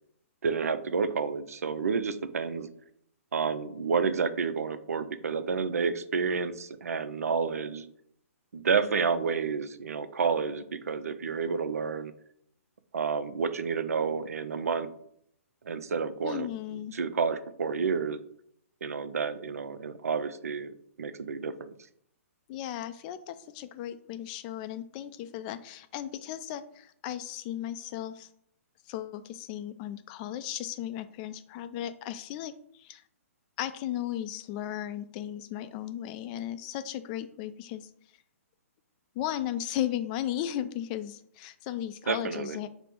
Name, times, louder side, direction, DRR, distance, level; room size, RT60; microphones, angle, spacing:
voice 1, 0.4-2.7 3.3-7.9 8.5-12.1 12.9-14.9 15.6-18.2 18.8-21.7 42.1-42.6, right 5 dB, 80° right, 12 dB, 0.5 m, -30 dB
voice 2, 16.2-16.9 22.5-28.3 28.9-33.0 33.6-37.9 39.2-42.7, left 11 dB, 35° left, 11 dB, 0.3 m, -36 dB
5.3 x 2.0 x 4.5 m, 0.68 s
hypercardioid pair, 135°, 8 cm